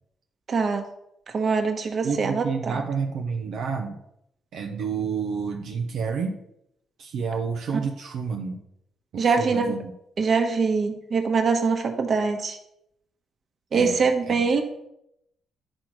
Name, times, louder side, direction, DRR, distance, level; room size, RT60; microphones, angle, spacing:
voice 1, 0.5-0.8 1.3-2.4 9.2-9.7 10.2-12.6 13.7-14.6, right 4 dB, 45° right, 5 dB, 1.5 m, -23 dB
voice 2, 2.0-4.0 4.5-6.4 7.0-8.6 9.1-9.9 13.7-14.0 14.3-14.6, right 5 dB, 75° right, 2 dB, 1.0 m, -29 dB
10.5 x 4.4 x 6.3 m, 0.80 s
cardioid pair, 90°, 0 cm